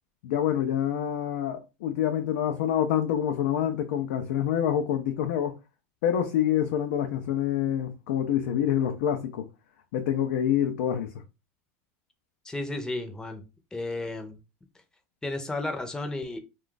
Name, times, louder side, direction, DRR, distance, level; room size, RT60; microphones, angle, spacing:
voice 1, 0.2-5.5 6.0-9.5 9.9-11.1, left 10 dB, 75° left, 0.5 m, -26 dB
voice 2, 12.4-13.4 13.7-14.4 15.2-16.4, left 2 dB, 10° left, 0.6 m, -33 dB
2.5 x 2.3 x 3.7 m
supercardioid pair, 115°, 7 cm